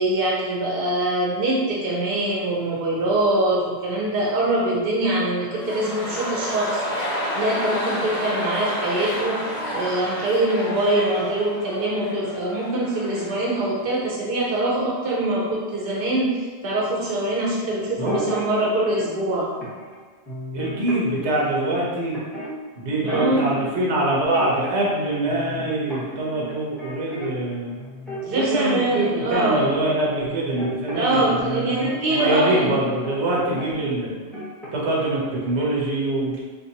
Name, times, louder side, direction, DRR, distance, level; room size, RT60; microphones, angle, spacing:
voice 1, 0.0-6.8 7.4-9.4 9.7-19.5 23.0-23.5 28.2-29.8 30.9-32.8, right 1 dB, 60° right, -4 dB, 0.9 m, -23 dB
sound 1, 5.4-13.5 13.8-13.9, equal, 40° left, 0.7 m, -30 dB
sound 2, 18.0-19.0 19.6-19.9 20.2-21.5 22.1-23.7 24.0-25.0 25.2-27.5 27.8-32.6 33.0-33.7 34.0-35.0 35.3-35.5, equal, ahead, 0.9 m, -34 dB
voice 2, 18.0-18.6 20.5-22.1 22.8-27.8 28.3-34.1 34.7-36.4, right 1 dB, 90° right, -4 dB, 1.1 m, -24 dB
3.9 x 2.6 x 2.8 m, 1.5 s
omnidirectional pair, 1.1 m